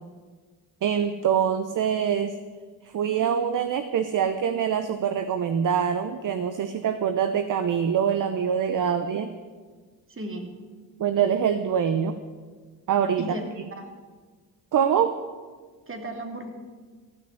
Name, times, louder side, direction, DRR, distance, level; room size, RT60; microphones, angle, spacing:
voice 1, 0.8-2.3 2.8-9.3 11.0-12.2 12.9-13.2 14.7-15.2, right 8 dB, 50° right, 10 dB, 0.9 m, -24 dB
voice 2, 10.1-10.6 13.2-13.5 13.8-13.9 15.9-16.5, right 1 dB, 30° right, 4 dB, 2.7 m, -35 dB
15.5 x 6.3 x 9.7 m, 1.5 s
supercardioid pair, 60°, 40 cm